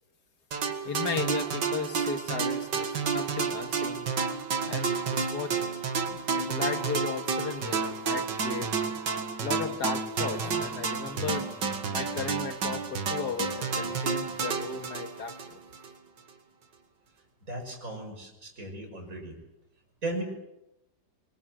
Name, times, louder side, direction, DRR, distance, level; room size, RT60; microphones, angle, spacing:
sound 1, 0.5-15.9, right 5 dB, 85° right, 2.4 m, -30 dB
voice 1, 0.8-4.1 4.7-5.8 6.0-8.7 9.4-11.4 11.9-15.6, left 6 dB, 65° left, 6 dB, 2.5 m, -35 dB
voice 2, 17.5-19.3 20.0-20.2, right 2 dB, 50° right, 2 dB, 6.7 m, -36 dB
24.5 x 22.5 x 7.8 m, 0.92 s
omnidirectional pair, 1.9 m